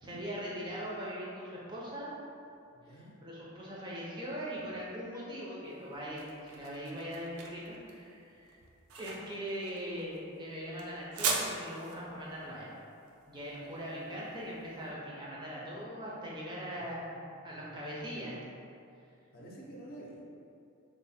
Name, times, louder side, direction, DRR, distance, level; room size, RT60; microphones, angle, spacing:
voice 1, 0.0-2.1 2.8-3.0 3.2-8.6 9.0-12.7 13.3-18.4, equal, 20° right, -6 dB, 0.5 m, -41 dB
voice 2, 2.7-3.1 16.7-18.0 19.3-20.2, right 1 dB, 45° left, -4 dB, 0.6 m, -51 dB
sound 1, 5.7-14.7, right 4 dB, 85° right, 0.5 m, -40 dB
3.1 x 2.0 x 4.1 m, 2.6 s
head